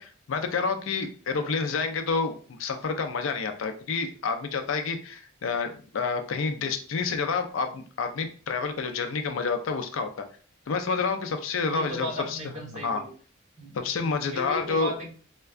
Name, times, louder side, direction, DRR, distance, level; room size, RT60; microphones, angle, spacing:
voice 1, 0.0-2.3 2.6-10.1 10.7-12.4 12.8-13.0 13.7-14.9, left 4 dB, 75° left, 7 dB, 0.4 m, -29 dB
voice 2, 11.6-13.1 13.6-15.1, equal, 35° right, -2 dB, 1.1 m, -36 dB
4.4 x 2.2 x 2.4 m, 0.41 s
head